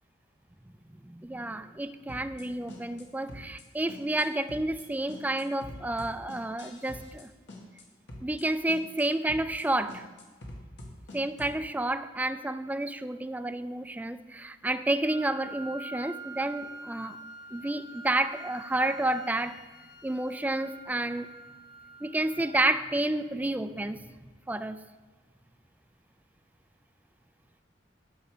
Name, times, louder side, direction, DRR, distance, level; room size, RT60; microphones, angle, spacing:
voice 1, 1.0-7.3 8.2-10.1 11.1-17.2 17.5-19.6 20.0-21.3 22.0-24.0 24.5-24.8, right 2 dB, 10° right, 12 dB, 0.3 m, -30 dB
sound 1, 2.1-2.4 2.7-3.0 3.3-3.6 3.9-4.2 4.5-4.8 5.1-7.2 7.5-7.8 8.1-8.4 8.7-9.0 9.3-9.6 9.9-11.6, left 1 dB, 70° left, 1.8 m, -45 dB
Wind instrument woodwind instrument, 15.0-23.0, right 2 dB, 50° left, 0.8 m, -46 dB
9.9 x 7.1 x 5.0 m, 1.3 s
head